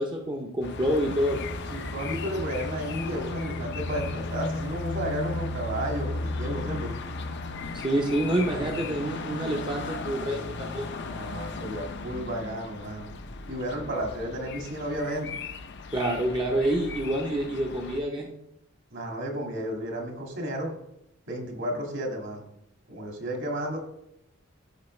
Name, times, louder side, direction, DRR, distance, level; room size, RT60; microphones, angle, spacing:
voice 1, 0.0-1.4 7.7-10.9 15.9-18.3, right 1 dB, 20° right, 0 dB, 0.7 m, -27 dB
sound 1, 0.6-18.0, left 3 dB, 55° left, 0.7 m, -35 dB
voice 2, 1.7-6.9 8.4-8.7 11.0-13.1 13.5-15.4 18.9-20.7 21.3-22.4 22.9-23.8, right 1 dB, 60° right, 1 dB, 2.0 m, -33 dB
13.0 x 5.6 x 3.2 m, 0.80 s
head